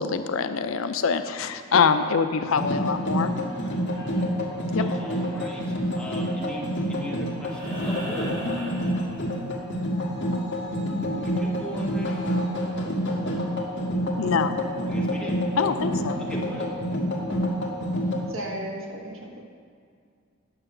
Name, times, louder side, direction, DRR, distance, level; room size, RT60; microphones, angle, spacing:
voice 1, 0.0-3.3 4.7-4.9 14.2-14.5 15.6-16.2, left 5 dB, 70° left, 9 dB, 0.5 m, -24 dB
sound 1, 2.4-18.2, equal, 55° left, 1.5 m, -28 dB
voice 2, 4.8-8.4 11.2-12.2 14.9-15.4 16.2-16.7, left 1 dB, 5° left, -4 dB, 1.4 m, -38 dB
sound 2, 7.4-9.8 11.6-11.7, right 1 dB, 50° right, 2.6 m, -37 dB
voice 3, 18.3-19.4, equal, 75° right, 0 dB, 1.4 m, -35 dB
9.9 x 5.8 x 6.6 m, 2.2 s
head